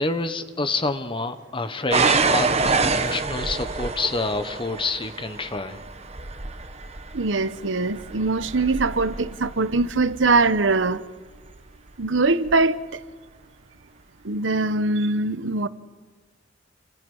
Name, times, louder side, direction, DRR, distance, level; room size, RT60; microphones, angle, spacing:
voice 1, 0.0-5.8, left 3 dB, 30° left, 1.2 m, -28 dB
sound 1, 1.9-10.7 11.5-11.9 12.5-12.6, right 4 dB, 35° right, 1.3 m, -27 dB
voice 2, 7.1-11.0 12.0-12.8 14.2-15.7, right 3 dB, 90° right, 1.0 m, -22 dB
29.0 x 26.0 x 5.5 m
head